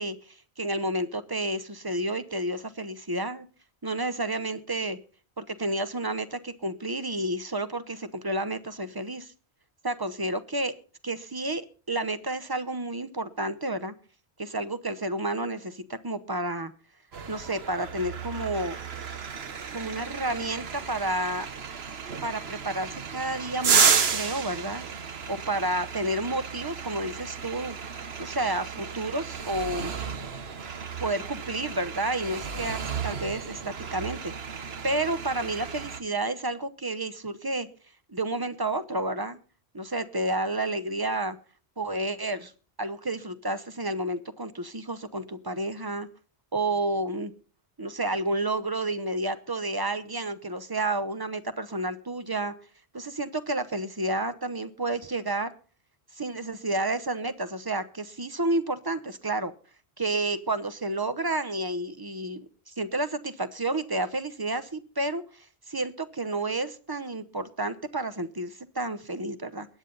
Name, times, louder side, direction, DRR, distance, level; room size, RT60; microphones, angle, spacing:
voice 1, 0.0-3.5 3.8-5.0 5.4-9.3 9.8-10.7 11.0-11.6 11.9-13.9 14.4-16.7 17.3-18.8 19.7-21.5 22.2-24.8 25.3-29.9 31.0-37.7 38.1-39.4 39.7-41.4 41.8-42.5 42.8-46.1 46.5-47.3 47.8-52.5 52.9-55.5 56.2-59.5 60.0-69.7, right 2 dB, 25° right, 12 dB, 0.8 m, -30 dB
sound 1, 17.1-36.0, right 6 dB, 75° right, 1.3 m, -32 dB
22.0 x 9.2 x 4.0 m, 0.38 s
omnidirectional pair, 1.1 m